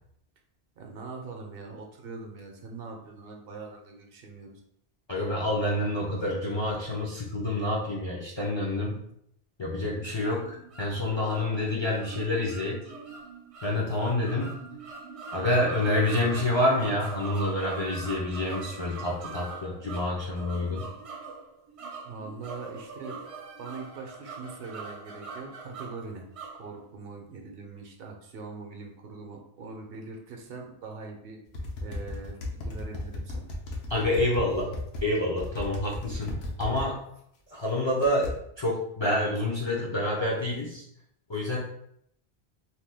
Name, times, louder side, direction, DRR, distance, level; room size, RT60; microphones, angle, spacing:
voice 1, 0.8-4.6 22.0-23.2 23.6-26.3 26.6-31.4 31.8-32.4 32.6-33.5, right 4 dB, 70° right, 2 dB, 0.7 m, -42 dB
voice 2, 5.1-9.0 9.6-12.9 13.6-14.6 15.3-20.9 33.9-37.0 37.5-40.8 41.3-41.6, left 1 dB, 40° left, -5 dB, 0.4 m, -28 dB
sound 1, 10.2-26.9, right 4 dB, 55° right, 0.4 m, -42 dB
sound 2, 31.5-35.0 35.4-36.9 38.0-38.3, left 1 dB, 75° left, 0.9 m, -35 dB
2.8 x 2.2 x 3.3 m, 0.72 s
omnidirectional pair, 1.1 m